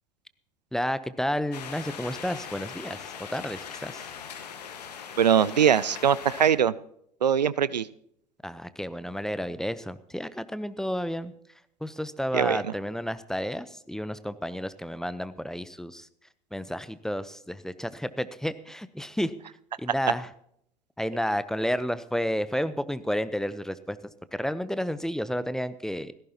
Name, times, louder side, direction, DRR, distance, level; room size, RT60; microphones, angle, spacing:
voice 1, 0.7-4.1 8.4-11.3 11.8-16.1 16.5-19.3 19.8-20.3 21.0-26.1, equal, ahead, 14 dB, 0.8 m, -31 dB
sound 1, 1.5-6.5, left 7 dB, 75° left, 1.6 m, -40 dB
voice 2, 5.2-6.7 7.2-7.9 12.3-12.6, right 8 dB, 85° right, 20 dB, 0.5 m, -22 dB
17.5 x 15.0 x 2.9 m, 0.69 s
figure-of-eight pair, 75°, 21 cm